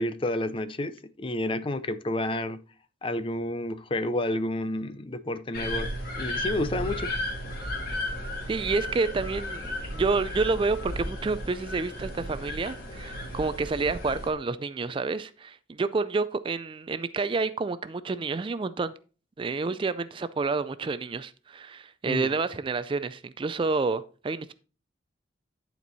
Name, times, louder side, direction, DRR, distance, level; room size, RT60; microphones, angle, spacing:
voice 1, 0.0-2.6 3.0-7.1 22.0-22.3, left 1 dB, 30° left, 0.5 m, -30 dB
sound 1, 5.5-14.3, left 1 dB, 55° left, 2.2 m, -34 dB
voice 2, 8.5-18.9 19.4-24.5, right 4 dB, 30° right, 0.3 m, -29 dB
11.0 x 4.5 x 4.1 m
head